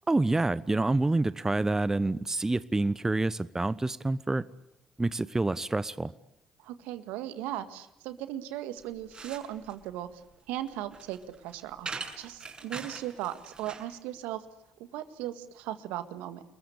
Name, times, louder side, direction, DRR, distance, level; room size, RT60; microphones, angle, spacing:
voice 1, 0.1-4.4 5.0-6.1, right 2 dB, 15° right, 16 dB, 1.0 m, -27 dB
voice 2, 6.6-10.2 10.5-14.5 14.8-16.4, right 13 dB, 70° right, 10 dB, 1.8 m, -37 dB
sound 1, 8.8-13.9, right 4 dB, 35° right, 6.6 m, -43 dB
30.0 x 21.5 x 8.6 m, 0.81 s
figure-of-eight pair, 45°, 3 cm